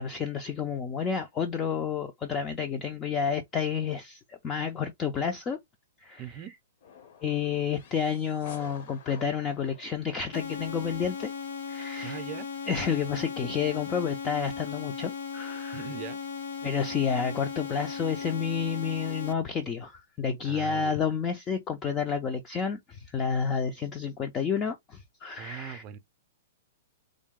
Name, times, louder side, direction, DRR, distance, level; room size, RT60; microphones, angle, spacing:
voice 1, 0.0-5.6 6.0-6.2 7.2-11.3 11.7-12.2 12.7-15.8 16.6-25.8, left 6 dB, 20° left, 0.5 m, -30 dB
voice 2, 6.2-6.6 12.0-12.5 15.7-16.2 20.4-21.0 25.4-26.0, right 10 dB, 30° right, 0.6 m, -40 dB
sound 1, 6.8-10.9, left 6 dB, 50° left, 1.0 m, -49 dB
sound 2, 10.3-19.3, left 6 dB, 70° left, 1.1 m, -37 dB
3.6 x 2.2 x 3.7 m
hypercardioid pair, 155°, 0 cm